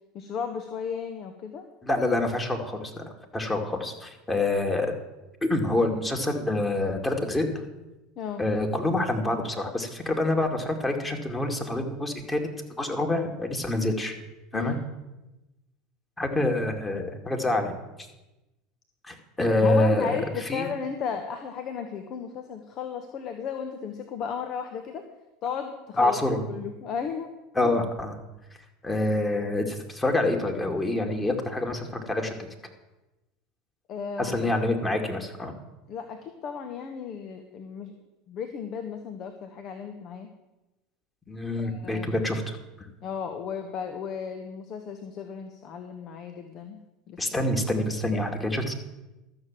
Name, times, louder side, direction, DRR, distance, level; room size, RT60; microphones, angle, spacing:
voice 1, 0.1-1.7 8.2-8.5 14.5-14.8 19.6-25.1 25.4-27.3 27.6-27.7 33.9-34.4 35.9-37.9 38.3-40.3 41.6-42.3 43.0-46.8 47.1-47.2, left 7 dB, 45° left, 6 dB, 1.2 m, -34 dB
voice 2, 1.8-4.9 5.4-7.6 8.4-12.5 12.8-14.1 14.5-14.8 16.2-17.8 19.0-20.7 26.0-26.4 27.5-28.2 28.8-32.3 34.2-35.5 41.3-42.9 47.2-48.7, left 2 dB, 15° left, 3 dB, 2.4 m, -26 dB
13.0 x 7.0 x 7.5 m, 1.0 s
hypercardioid pair, 80°, 0 cm